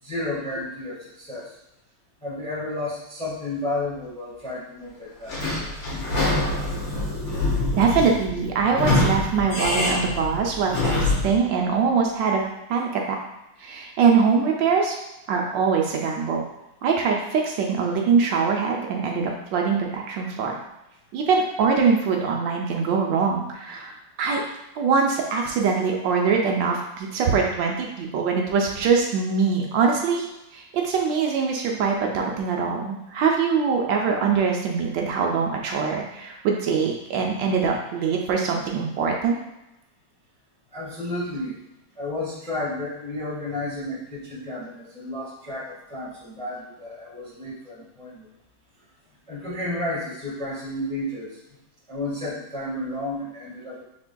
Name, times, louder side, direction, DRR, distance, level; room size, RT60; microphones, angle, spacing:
voice 1, 0.0-1.5 2.2-5.4 40.7-41.6 41.9-48.3 49.3-51.4 51.9-53.8, left 1 dB, 5° left, -8 dB, 1.0 m, -32 dB
Sliding door / Squeak, 5.3-11.4, left 2 dB, 75° left, 2.1 m, -25 dB
voice 2, 7.8-12.4 12.7-13.2 13.6-15.0 15.3-16.4 16.8-20.5 21.1-24.4 24.8-30.3 30.5-39.4, right 5 dB, 75° right, 0 dB, 1.3 m, -23 dB
6.1 x 3.4 x 2.2 m, 0.92 s
omnidirectional pair, 2.1 m